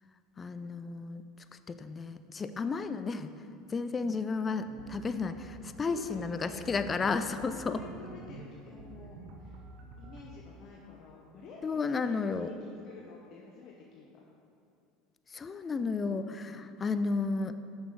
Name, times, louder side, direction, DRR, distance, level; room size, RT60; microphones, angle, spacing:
voice 1, 0.4-1.2 1.5-3.3 3.7-7.8 11.6-12.5 15.3-17.5, left 4 dB, 30° left, 11 dB, 0.4 m, -33 dB
sound 1, 4.7-10.3, right 3 dB, 65° right, 0.8 m, -49 dB
voice 2, 5.8-6.7 7.2-9.7 10.0-14.2 16.0-16.6, left 4 dB, 55° left, -2 dB, 0.8 m, -50 dB
6.9 x 5.8 x 3.8 m, 2.5 s
hypercardioid pair, 80°, 0 cm